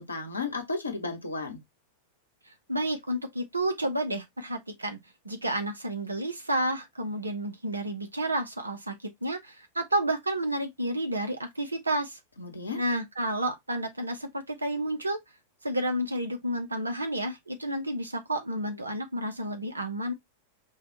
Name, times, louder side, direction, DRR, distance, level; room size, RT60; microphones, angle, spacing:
voice 1, 0.0-1.6 12.4-12.8, left 3 dB, 80° left, 0.9 m, -34 dB
voice 2, 2.7-5.0 5.2-12.2 12.7-15.2 15.6-20.1, right 1 dB, 80° right, 0.8 m, -30 dB
4.7 x 2.4 x 3.0 m
figure-of-eight pair, 90°, 0 cm